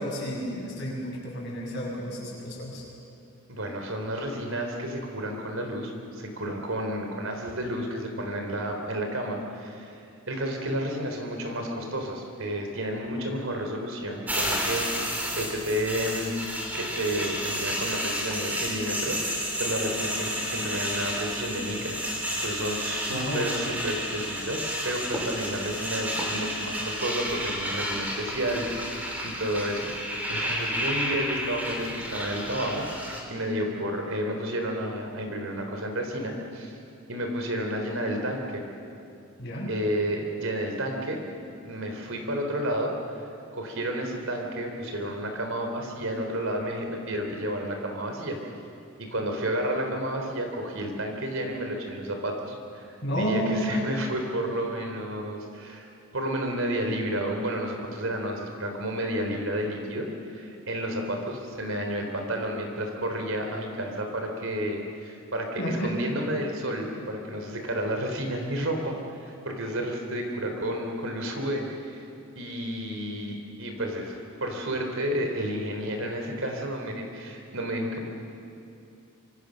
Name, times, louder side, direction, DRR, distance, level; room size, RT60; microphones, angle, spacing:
voice 1, 0.0-2.8 23.1-23.4 39.4-39.7 53.0-53.7 65.6-66.1, equal, 50° left, -3 dB, 7.0 m, -31 dB
voice 2, 3.5-10.0 10.3-15.1 15.4-16.4 16.7-29.9 30.3-36.8 37.1-38.6 39.7-41.2 41.6-42.9 43.5-48.4 49.0-72.0 72.4-78.1, right 1 dB, 65° right, 3 dB, 3.9 m, -31 dB
sound 1, 14.3-33.2, equal, 10° right, 2.9 m, -31 dB
25.5 x 24.5 x 6.5 m, 2.6 s
head